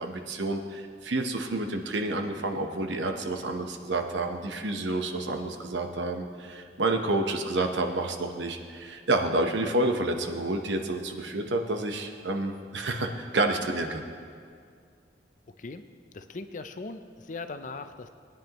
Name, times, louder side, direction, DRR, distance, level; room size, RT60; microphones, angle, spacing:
voice 1, 0.0-14.0, right 2 dB, 80° right, 4 dB, 1.0 m, -29 dB
voice 2, 16.1-18.1, left 3 dB, 45° left, 9 dB, 0.5 m, -39 dB
20.0 x 9.9 x 3.0 m, 2.2 s
head